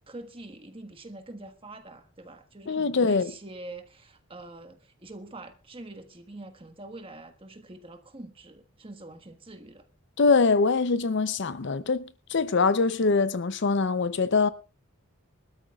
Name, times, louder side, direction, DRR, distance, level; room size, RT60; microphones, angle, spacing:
voice 1, 0.1-9.9, right 2 dB, 25° right, 1.5 m, -45 dB
voice 2, 2.7-3.3 10.2-14.5, left 4 dB, 60° left, 0.6 m, -23 dB
24.0 x 13.0 x 2.4 m
head